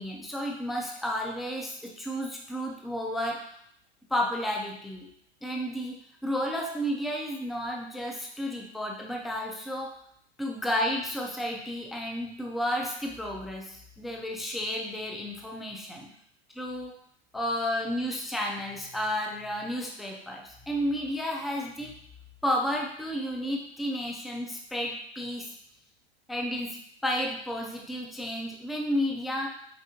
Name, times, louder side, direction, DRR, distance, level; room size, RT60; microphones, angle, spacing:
voice 1, 0.0-3.4 4.1-5.1 5.4-6.0 6.2-10.0 10.4-16.1 16.5-16.9 17.3-22.0 22.4-25.5 26.3-29.5, equal, ahead, 0 dB, 0.3 m, -32 dB
5.1 x 2.6 x 2.7 m, 0.68 s
hypercardioid pair, 110°, 32 cm